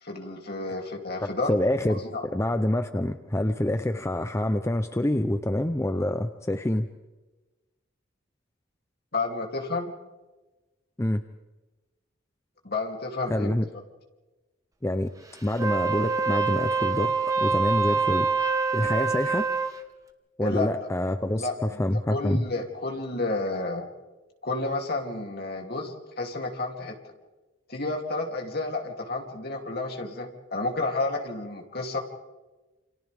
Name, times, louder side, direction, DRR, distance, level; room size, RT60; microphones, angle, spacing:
voice 1, 0.0-1.5 1.9-2.2 9.1-9.9 12.6-13.5 20.4-20.9 21.3-21.8 22.1-23.9 24.4-27.0 27.7-32.0, left 2 dB, 50° left, 1 dB, 3.0 m, -31 dB
voice 2, 1.2-6.9 11.0-11.2 13.3-13.7 14.8-15.1 15.4-17.1 17.4-18.3 18.7-19.5 20.4-21.5 21.8-22.4, left 1 dB, 15° left, 8 dB, 0.6 m, -26 dB
Wind instrument woodwind instrument, 15.5-19.8, right 4 dB, 15° right, 1.3 m, -25 dB
29.0 x 27.5 x 3.6 m, 1.2 s
head